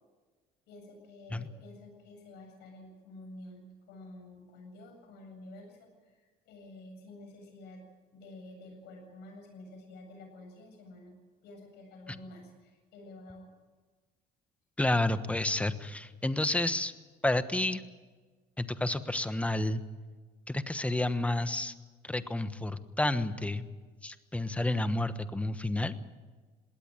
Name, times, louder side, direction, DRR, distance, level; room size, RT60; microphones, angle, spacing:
voice 1, 0.7-7.8 8.1-11.1 11.4-13.5, left 2 dB, 85° left, 3 dB, 8.0 m, -50 dB
voice 2, 14.8-16.9 17.2-17.8 18.6-19.8 20.5-21.7 22.0-23.6 24.0-26.0, left 2 dB, 10° left, 12 dB, 1.2 m, -30 dB
20.5 x 17.5 x 8.9 m, 1.4 s
cardioid pair, 110°, 17 cm